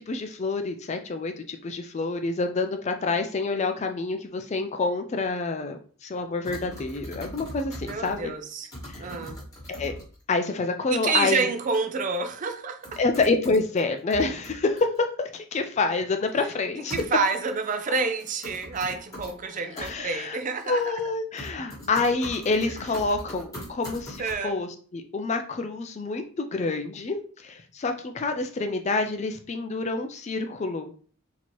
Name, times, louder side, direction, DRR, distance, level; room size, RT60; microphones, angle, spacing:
voice 1, 0.0-8.3 8.9-9.1 9.8-9.9 10.3-11.4 13.0-16.9 19.7-20.4 20.7-30.9, left 3 dB, 30° left, 7 dB, 0.3 m, -27 dB
sound 1, 6.4-8.3 8.7-10.2 11.7-11.8 12.1-12.2 12.8-13.8 14.1-15.0 16.9-17.5 18.2-19.3 19.8-19.9 20.6-21.1 21.4-24.3, equal, 15° left, 1.5 m, -40 dB
voice 2, 7.8-8.7 9.0-9.4 10.9-13.0 16.9-21.0 24.2-24.6, right 4 dB, 35° right, 7 dB, 0.4 m, -28 dB
4.3 x 2.9 x 3.0 m, 0.43 s
head